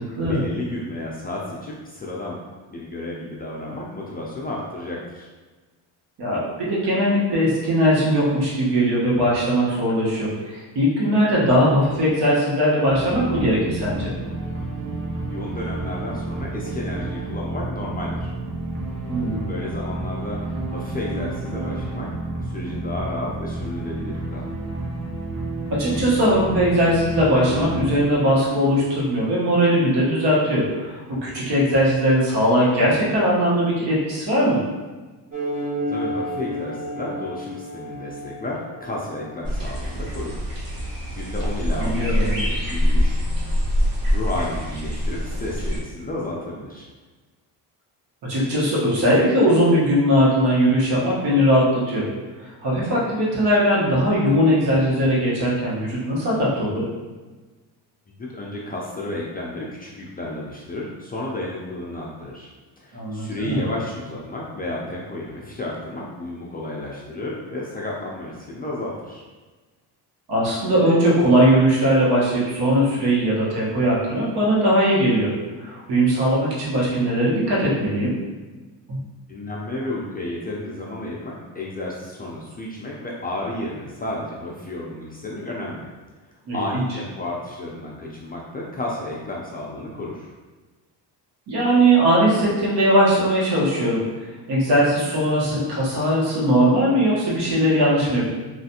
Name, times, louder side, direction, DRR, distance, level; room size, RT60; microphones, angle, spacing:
voice 1, 0.0-2.4 2.7-5.3 15.3-18.3 19.5-22.1 22.4-24.5 35.9-40.5 40.7-43.2 44.1-46.9 58.2-62.5 62.8-69.2 79.3-85.9 86.5-90.3, left 1 dB, 25° left, -4 dB, 0.3 m, -32 dB
voice 2, 6.2-14.1 19.1-19.5 25.7-34.6 41.7-42.4 48.2-52.0 52.4-56.8 62.9-63.6 70.3-75.3 75.6-78.1 78.9-79.0 86.5-86.8 91.5-94.0 94.5-98.2, equal, 70° right, -6 dB, 1.2 m, -20 dB
sound 1, 12.9-29.4, right 2 dB, 85° right, 0.9 m, -30 dB
sound 2, 35.3-40.3, equal, 30° right, 1.3 m, -31 dB
sound 3, 39.4-45.8, equal, 50° right, 0.9 m, -24 dB
3.2 x 2.4 x 2.8 m, 1.3 s
cardioid pair, 120°, 43 cm